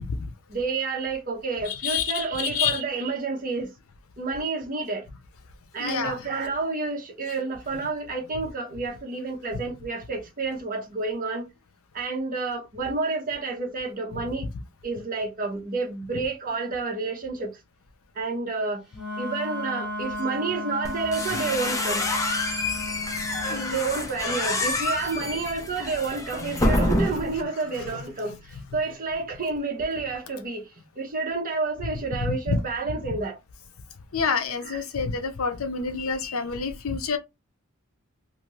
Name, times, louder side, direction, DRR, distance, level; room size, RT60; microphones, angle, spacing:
voice 1, 0.5-3.7 4.2-5.1 5.7-11.5 11.9-14.5 14.8-17.6 18.1-18.8 19.2-22.1 23.7-33.4 34.6-34.8, right 3 dB, 40° right, 0.9 m, -30 dB
voice 2, 1.8-2.8 5.8-6.2 23.5-23.8 26.6-26.7 34.1-37.2, left 6 dB, 70° left, 0.6 m, -28 dB
Wind instrument woodwind instrument, 18.9-23.7, left 1 dB, 5° right, 1.2 m, -34 dB
sound 1, 20.8-27.4, left 2 dB, 15° left, 0.5 m, -27 dB
2.7 x 2.5 x 3.0 m
head